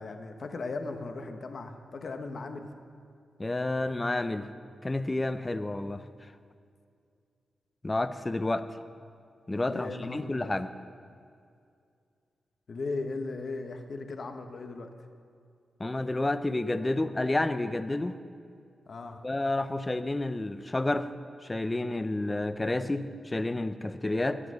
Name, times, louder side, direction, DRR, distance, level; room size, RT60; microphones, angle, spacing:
voice 1, 0.0-2.7 9.6-10.5 12.7-14.9 18.9-19.2, left 3 dB, 55° left, 6 dB, 1.1 m, -37 dB
voice 2, 3.4-4.5 4.8-6.0 7.8-8.7 9.5-10.7 15.8-18.2 19.2-21.1 21.5-24.4, left 2 dB, 20° left, 11 dB, 0.6 m, -30 dB
21.0 x 7.7 x 6.4 m, 2.3 s
cardioid pair, 95°, 0 cm